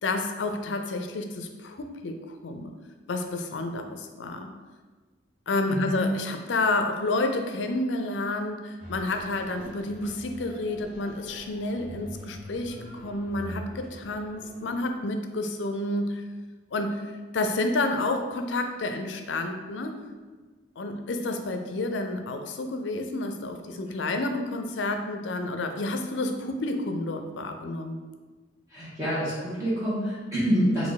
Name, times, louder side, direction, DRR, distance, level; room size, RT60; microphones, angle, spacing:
voice 1, 0.0-2.7 3.1-4.5 5.5-16.2 16.7-17.0 17.3-20.0 20.8-28.0, left 2 dB, 85° left, 6 dB, 0.5 m, -30 dB
voice 2, 5.6-6.1 28.7-30.9, equal, 20° right, -11 dB, 1.4 m, -27 dB
sound 1, 8.8-15.0, equal, 40° right, 1.2 m, -44 dB
4.3 x 2.6 x 4.1 m, 1.4 s
head